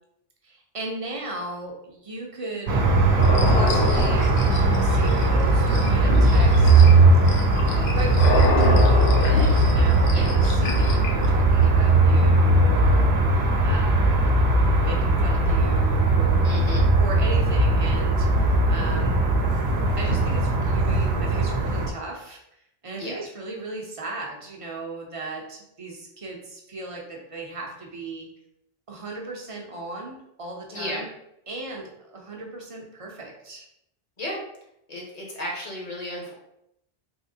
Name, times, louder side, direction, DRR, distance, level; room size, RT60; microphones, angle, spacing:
voice 1, 0.4-2.8 3.4-4.3 4.8-6.7 7.9-14.1 14.8-19.3 20.0-22.4 22.8-28.3 28.9-31.1 31.5-33.7, right 2 dB, 40° right, -1 dB, 0.6 m, -36 dB
sound 1, 2.7-21.9, right 2 dB, 85° right, 0.8 m, -19 dB
sound 2, 3.2-11.3, left 3 dB, 65° left, 0.7 m, -28 dB
voice 2, 16.4-16.8 22.9-23.2 30.7-31.0 34.2-34.4 34.9-36.3, left 1 dB, 40° left, -3 dB, 1.0 m, -33 dB
3.6 x 2.7 x 2.7 m, 0.79 s
omnidirectional pair, 1.0 m